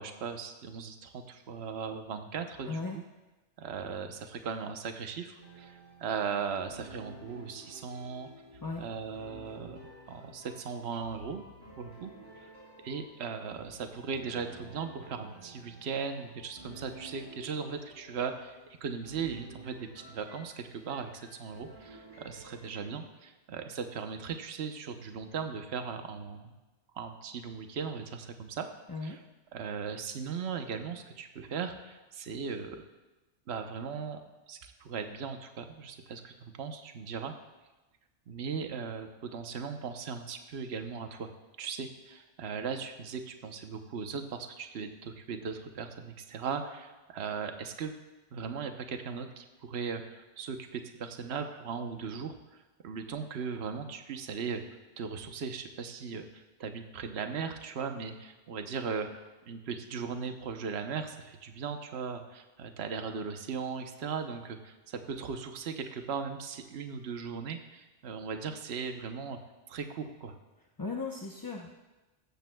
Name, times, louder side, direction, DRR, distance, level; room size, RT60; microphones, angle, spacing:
voice 1, 0.0-3.0 3.6-8.3 8.8-9.8 10.1-11.4 11.8-12.5 12.8-26.5 26.9-28.7 29.0-29.2 29.5-32.8 33.5-34.2 34.5-37.3 38.3-41.3 41.6-47.9 48.3-54.6 55.0-59.1 59.5-69.4 69.7-70.3, right 6 dB, 65° right, 6 dB, 1.1 m, -38 dB
voice 2, 2.7-3.0 8.6-8.8 28.9-29.2 70.8-71.7, left 3 dB, 25° left, 0 dB, 0.5 m, -36 dB
sound 1, 5.4-22.8, right 1 dB, 80° right, 5.1 m, -52 dB
15.5 x 14.0 x 2.2 m, 1.1 s
omnidirectional pair, 1.2 m